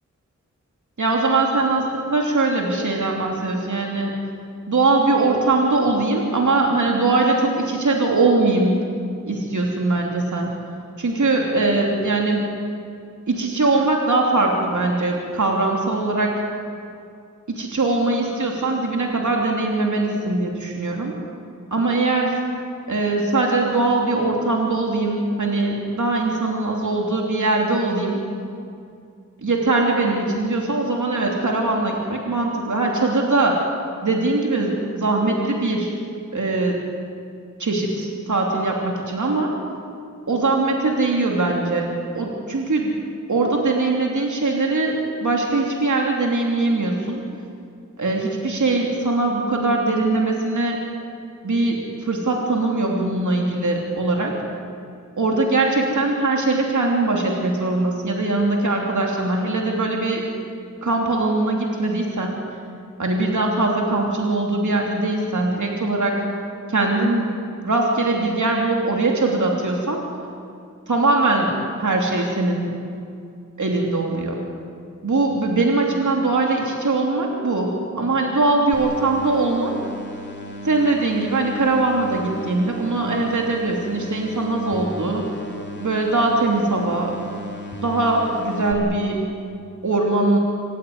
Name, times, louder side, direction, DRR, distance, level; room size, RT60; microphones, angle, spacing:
voice 1, 1.0-4.1 4.7-8.8 9.3-10.5 11.0-12.4 13.3-16.3 17.5-21.1 21.7-22.4 22.9-28.2 29.4-33.6 34.0-35.9 36.3-36.8 37.6-39.5 40.3-42.9 43.3-47.2 48.0-50.8 51.4-54.3 55.2-60.2 60.8-62.4 63.0-66.1 66.7-67.3 67.6-70.0 70.9-72.7 73.6-74.4 75.0-79.7 80.6-85.3 85.8-87.2 87.8-89.2 89.8-90.4, right 2 dB, 70° right, 0 dB, 3.1 m, -21 dB
sound 1, 78.7-88.7, left 1 dB, 35° left, 3.0 m, -36 dB
26.5 x 15.0 x 9.5 m, 2.4 s
wide cardioid pair, 70°, 31 cm